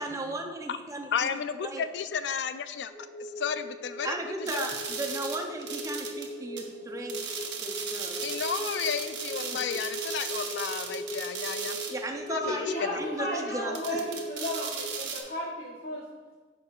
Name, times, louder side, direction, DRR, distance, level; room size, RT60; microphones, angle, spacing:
voice 1, 0.0-1.3 1.6-1.8 4.0-7.2 7.6-8.2 9.4-9.6 11.9-14.0, right 2 dB, 20° right, 3 dB, 0.5 m, -36 dB
voice 2, 1.1-2.9 3.2-4.7 8.2-11.8 12.3-13.0, left 7 dB, 75° left, 11 dB, 0.3 m, -33 dB
sound 1, 2.9-14.9, equal, 15° left, 1.3 m, -39 dB
sound 2, 4.5-6.3 6.6-6.7 7.1-12.0 12.3-12.4 13.8-15.2, right 6 dB, 90° right, 0.8 m, -36 dB
voice 3, 12.4-16.0, left 1 dB, 55° left, -3 dB, 0.8 m, -34 dB
10.5 x 4.5 x 2.4 m, 1.4 s
head